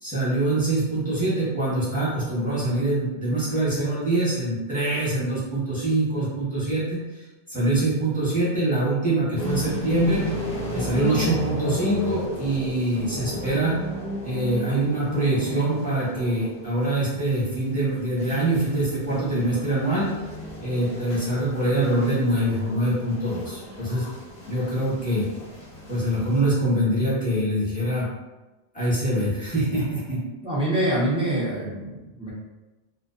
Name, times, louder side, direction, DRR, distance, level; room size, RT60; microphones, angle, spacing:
voice 1, 0.0-7.2 7.5-10.3 10.7-13.7 14.2-20.1 20.6-24.0 24.5-25.3 25.9-28.1 28.7-30.2, right 1 dB, 10° left, -10 dB, 0.9 m, -24 dB
sound 1, 9.3-26.4, left 1 dB, 40° left, 0.7 m, -34 dB
voice 2, 30.4-32.3, right 1 dB, 10° right, -7 dB, 0.3 m, -25 dB
2.4 x 2.2 x 2.4 m, 1.1 s
omnidirectional pair, 1.2 m